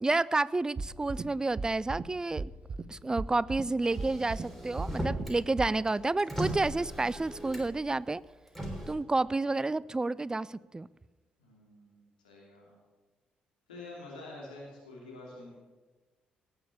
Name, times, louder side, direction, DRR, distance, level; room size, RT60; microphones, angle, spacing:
voice 1, 0.0-2.5 2.9-8.2 8.9-10.9, right 2 dB, 15° right, 21 dB, 0.4 m, -30 dB
sound 1, 0.8-1.2 1.6-2.0 2.4-2.8 3.2-3.6 4.0-4.4 4.8-5.2 5.6-5.7, right 4 dB, 35° right, 0.8 m, -35 dB
Motor vehicle (road), 3.8-5.4 5.7-7.9 8.5-8.9, equal, 5° left, 3.5 m, -38 dB
voice 2, 11.4-12.8 13.7-15.5, left 2 dB, 80° left, -2 dB, 2.9 m, -48 dB
17.5 x 6.9 x 7.0 m, 1.2 s
figure-of-eight pair, 45°, 4 cm